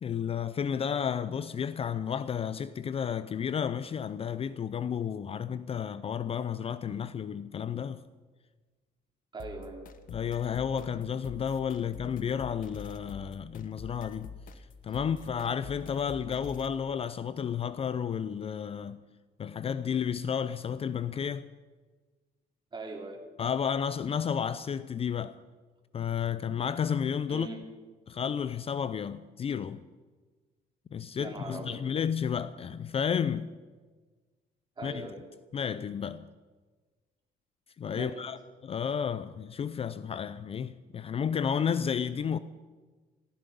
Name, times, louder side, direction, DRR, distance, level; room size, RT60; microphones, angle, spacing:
voice 1, 0.0-8.0 10.1-19.0 19.4-21.5 23.4-25.4 25.9-27.5 28.1-29.8 30.9-33.5 34.8-35.1 35.5-36.3 37.8-42.4, left 7 dB, 35° left, 0.5 m, -32 dB
voice 2, 9.3-9.9 22.7-23.2 27.3-27.6 31.2-31.8 34.8-35.3 37.9-38.2, right 3 dB, 25° right, 3.2 m, -40 dB
sound 1, 9.4-16.8, left 4 dB, 55° left, 1.2 m, -46 dB
17.0 x 14.5 x 5.4 m
cardioid pair, 110°, 17 cm